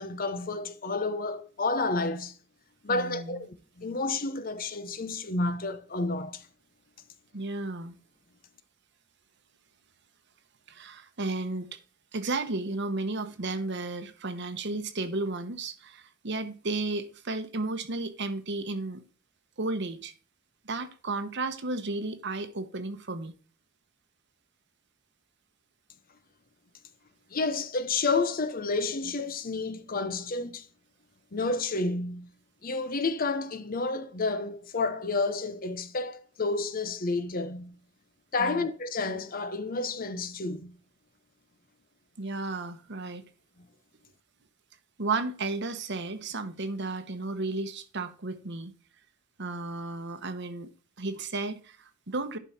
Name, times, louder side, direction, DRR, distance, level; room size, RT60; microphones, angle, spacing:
voice 1, 0.0-2.3 2.8-6.4 27.3-30.7 31.3-32.3 32.6-37.7 38.3-40.7, left 3 dB, 45° left, 0.9 m, -30 dB
voice 2, 2.9-3.4 7.3-8.0 10.7-11.8 12.1-19.0 19.6-20.1 20.6-23.3 38.4-38.7 42.2-43.2 45.0-48.7 49.4-50.7 51.0-52.4, right 3 dB, 60° right, 1.1 m, -33 dB
11.0 x 5.4 x 4.3 m
head